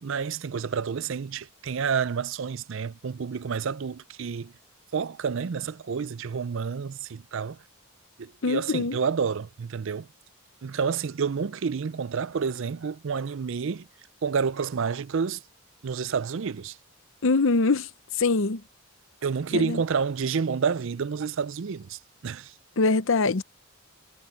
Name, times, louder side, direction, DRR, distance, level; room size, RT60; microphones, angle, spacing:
voice 1, 0.0-4.5 4.9-7.6 8.2-10.1 10.6-13.9 14.2-15.4 15.8-16.8 19.2-22.5, right 6 dB, 60° right, 0.4 m, -29 dB
voice 2, 8.4-9.0 17.2-17.9 18.2-18.6 19.5-19.8 22.8-23.4, left 3 dB, 60° left, 0.7 m, -23 dB
head